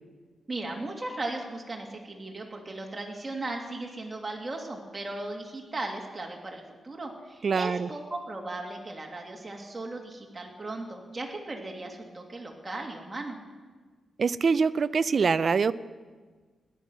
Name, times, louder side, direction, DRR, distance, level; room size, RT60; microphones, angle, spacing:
voice 1, 0.5-13.4, right 2 dB, 25° right, 0 dB, 2.5 m, -37 dB
voice 2, 7.4-7.9 14.2-15.7, right 5 dB, 50° right, 15 dB, 0.5 m, -24 dB
17.0 x 10.5 x 6.2 m, 1.4 s
cardioid pair, 105°, 0 cm